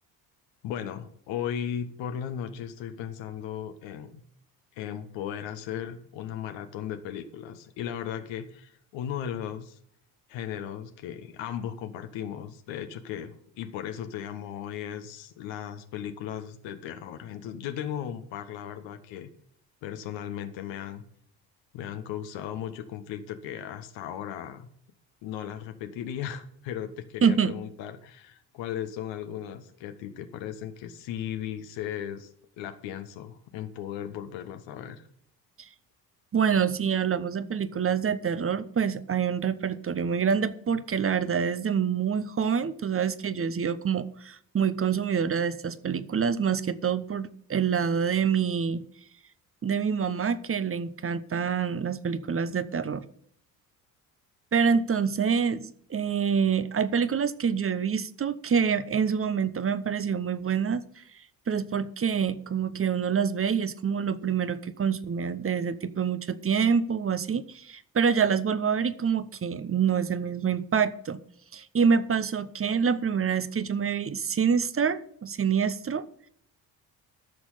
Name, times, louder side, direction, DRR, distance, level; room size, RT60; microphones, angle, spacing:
voice 1, 0.6-4.2 4.7-9.8 10.3-19.3 19.8-21.0 21.7-24.7 25.2-35.1, left 9 dB, 65° left, 1.2 m, -36 dB
voice 2, 27.2-27.5 35.6-35.7 36.3-48.8 49.6-53.0 54.5-60.8 61.5-71.2 71.5-76.1, right 6 dB, 25° right, 0.9 m, -26 dB
14.0 x 6.2 x 5.7 m
hypercardioid pair, 50°, 49 cm